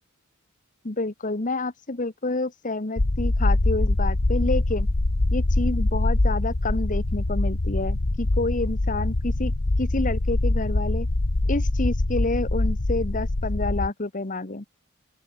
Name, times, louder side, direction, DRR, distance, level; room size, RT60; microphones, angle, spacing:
voice 1, 0.8-4.9 5.3-9.5 9.8-11.1 11.5-14.7, left 2 dB, 40° left, 1.3 m, -28 dB
sound 1, 3.0-13.9, left 2 dB, 80° left, 1.4 m, -24 dB
open air
head